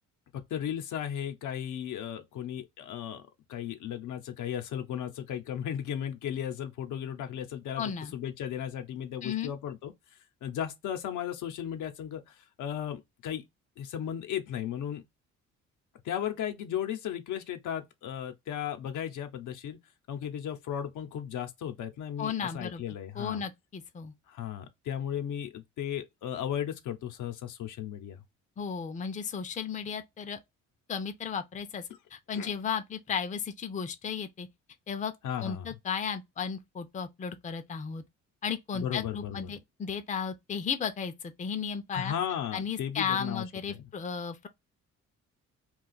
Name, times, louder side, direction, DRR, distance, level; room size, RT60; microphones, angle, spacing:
voice 1, 0.3-3.2 3.5-9.9 10.4-13.4 13.8-15.0 16.0-19.8 20.1-23.5 24.3-28.2 32.3-32.6 35.2-35.8 38.7-39.6 41.9-43.9, left 9 dB, 80° left, 0.7 m, -35 dB
voice 2, 7.8-8.1 9.2-9.5 22.2-22.8 23.2-24.1 28.6-30.4 30.9-31.8 32.1-34.5 34.9-35.1 35.4-38.0 38.4-42.1 42.5-44.5, left 7 dB, 25° left, 0.5 m, -34 dB
2.5 x 2.3 x 3.8 m
cardioid pair, 90°, 30 cm